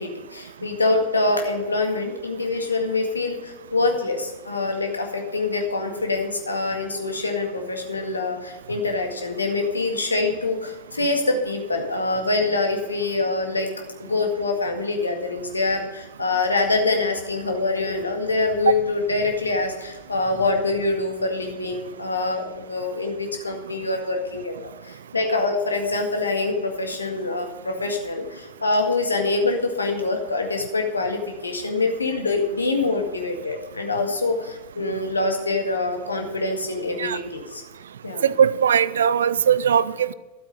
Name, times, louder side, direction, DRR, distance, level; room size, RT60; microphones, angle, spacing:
voice 1, 0.0-13.7 14.0-37.6 38.0-38.2, left 3 dB, 80° left, 3 dB, 1.8 m, -25 dB
voice 2, 38.2-40.1, right 8 dB, 65° right, 18 dB, 0.5 m, -19 dB
12.5 x 8.1 x 5.4 m, 1.2 s
figure-of-eight pair, 90°, 0 cm